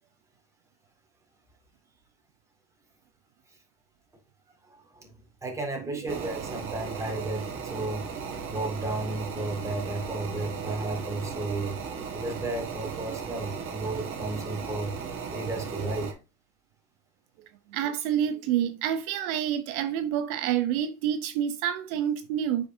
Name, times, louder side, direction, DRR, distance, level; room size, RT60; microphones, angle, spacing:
voice 1, 5.4-8.0 8.5-11.8 12.1-14.9 15.3-16.1, right 2 dB, 5° right, 1.9 m, -33 dB
sound 1, 6.1-16.1, right 6 dB, 25° right, 1.5 m, -36 dB
voice 2, 17.7-22.7, right 10 dB, 65° right, 0.8 m, -28 dB
8.0 x 5.4 x 2.6 m
supercardioid pair, 135°, 46 cm